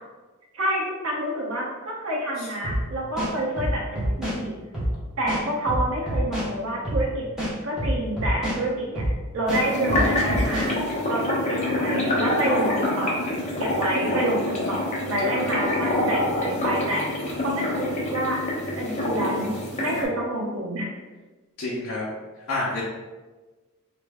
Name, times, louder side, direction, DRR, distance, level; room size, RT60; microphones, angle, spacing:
voice 1, 0.5-4.5 5.2-7.2 7.6-9.1 9.3-10.8 11.1-13.2 13.6-18.4 18.8-20.9, right 1 dB, 90° right, -3 dB, 0.7 m, -28 dB
sound 1, 2.6-2.8 3.2-4.4 4.7-4.9 5.3-6.5 6.8-7.0 7.4-8.6 8.9-9.1 9.5-10.7, equal, 5° right, 1.3 m, -26 dB
sound 2, 9.5-20.0, left 1 dB, 35° left, 0.7 m, -26 dB
voice 2, 21.6-22.1 22.5-22.8, left 2 dB, 70° left, -7 dB, 0.6 m, -29 dB
3.1 x 2.5 x 3.4 m, 1.2 s
head